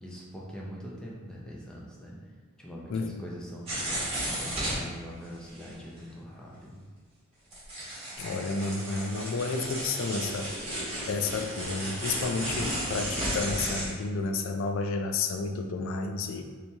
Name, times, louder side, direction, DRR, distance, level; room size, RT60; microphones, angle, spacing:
voice 1, 0.0-2.3 2.6-6.8, equal, 5° left, -5 dB, 0.5 m, -43 dB
sound 1, 3.7-4.8 5.5-5.7 6.0-6.1 6.3-6.4 7.5-13.9, right 1 dB, 30° right, 1.1 m, -33 dB
voice 2, 8.2-10.5 11.1-16.4, left 4 dB, 60° left, 5 dB, 0.3 m, -31 dB
2.9 x 2.8 x 3.4 m, 1.5 s
head